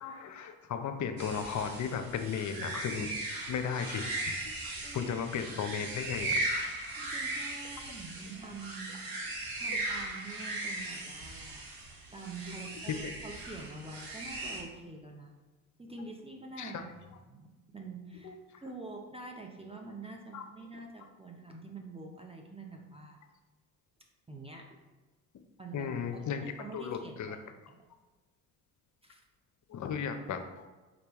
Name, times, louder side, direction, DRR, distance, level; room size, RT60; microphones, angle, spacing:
voice 1, 0.0-3.1 3.5-6.4 13.0-13.1 16.6-16.8 18.2-18.3 20.3-20.4 25.7-26.4 26.7-27.4 29.7-30.7, left 7 dB, 45° left, 7 dB, 0.6 m, -35 dB
sound 1, 1.2-14.6, right 2 dB, 55° right, 1.4 m, -38 dB
voice 2, 4.7-5.1 7.0-9.1 9.6-11.7 12.1-15.3 15.8-16.9 17.3-23.2 24.3-24.8 25.6-27.4 27.7-27.8 29.0-29.2, right 3 dB, 15° right, 1 dB, 0.6 m, -46 dB
5.1 x 3.3 x 3.0 m, 1.2 s
hypercardioid pair, 60°, 42 cm